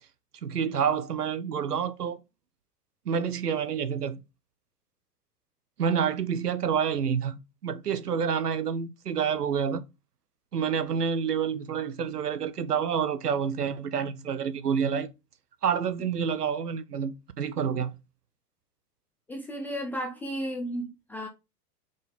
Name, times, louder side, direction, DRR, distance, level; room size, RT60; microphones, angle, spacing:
voice 1, 0.4-2.2 3.1-4.2 5.8-9.8 10.5-15.1 15.6-17.9, right 7 dB, 75° right, 0.9 m, -28 dB
voice 2, 19.3-21.3, equal, 5° left, 0.4 m, -34 dB
5.5 x 3.9 x 5.1 m
figure-of-eight pair, 95°, 47 cm